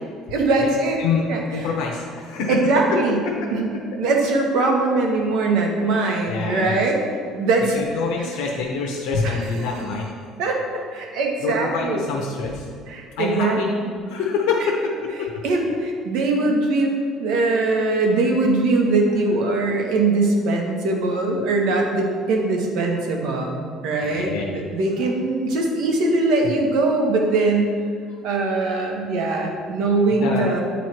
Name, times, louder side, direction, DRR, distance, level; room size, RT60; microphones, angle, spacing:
voice 1, 0.3-1.0 1.3-1.4 2.5-3.2 3.5-3.7 4.0-7.0 7.3-7.7 9.2-9.4 10.4-10.6 10.9-12.1 12.9-13.9 15.4-16.9 17.2-27.7 28.2-30.6, right 3 dB, 65° right, 1 dB, 1.0 m, -21 dB
voice 2, 1.5-3.5 6.3-6.8 7.7-10.1 11.4-12.7 13.2-13.7 13.9-15.4 24.0-24.4 25.0-25.1 26.4-26.5 30.1-30.6, left 4 dB, 90° left, -2 dB, 0.7 m, -26 dB
8.8 x 3.1 x 4.5 m, 2.1 s
cardioid pair, 165°, 0 cm